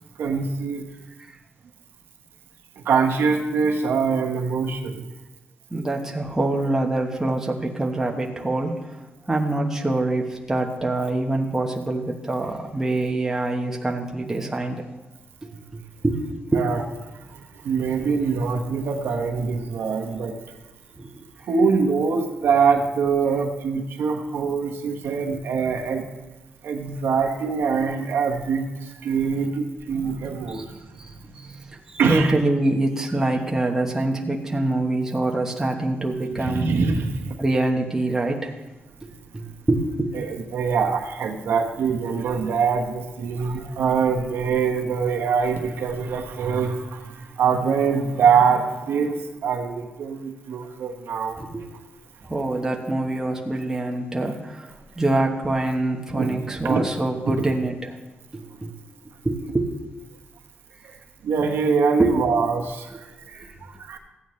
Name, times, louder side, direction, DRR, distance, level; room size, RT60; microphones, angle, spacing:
voice 1, 0.2-0.8 2.8-5.1 16.5-16.8 17.1-20.3 21.4-26.0 26.6-31.5 32.0-32.4 36.3-37.4 40.1-51.4 56.1-56.8 60.8-60.9 61.2-64.0, right 5 dB, 80° right, 2 dB, 1.2 m, -24 dB
voice 2, 5.7-8.9 9.3-14.9 15.4-16.7 21.0-21.3 30.5-30.6 31.0-31.1 31.4-31.5 31.9-36.7 37.4-38.5 39.0-40.1 51.4-51.7 52.3-58.0 58.3-58.7 59.2-59.7 62.0-62.4, right 2 dB, 10° right, 0 dB, 1.0 m, -25 dB
15.0 x 8.8 x 3.2 m, 1.1 s
wide cardioid pair, 150°, 4 cm